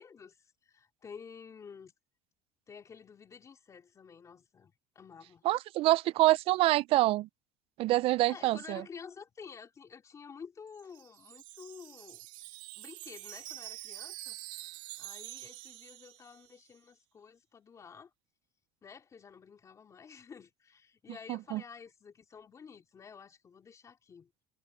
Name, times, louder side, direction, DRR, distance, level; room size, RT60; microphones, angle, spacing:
voice 1, 0.0-1.9 2.7-5.4 8.3-12.3 12.8-14.4 15.0-18.1 18.8-24.3, left 6 dB, 25° left, 3.5 m, -51 dB
voice 2, 5.4-7.3 7.8-8.8 21.3-21.6, right 17 dB, 45° right, 0.4 m, -26 dB
Wind chime, 10.7-16.7, right 19 dB, 75° right, 2.3 m, -46 dB
cardioid pair, 155°, 13 cm